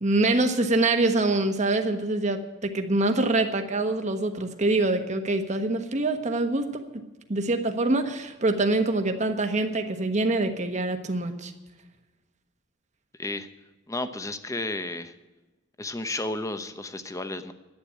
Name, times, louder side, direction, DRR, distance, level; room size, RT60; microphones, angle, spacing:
voice 1, 0.0-6.9 7.3-11.5, right 2 dB, 40° right, 6 dB, 1.3 m, -25 dB
voice 2, 13.9-15.1 15.8-17.5, left 2 dB, 15° left, 10 dB, 0.8 m, -32 dB
11.5 x 8.9 x 9.7 m, 1.2 s
head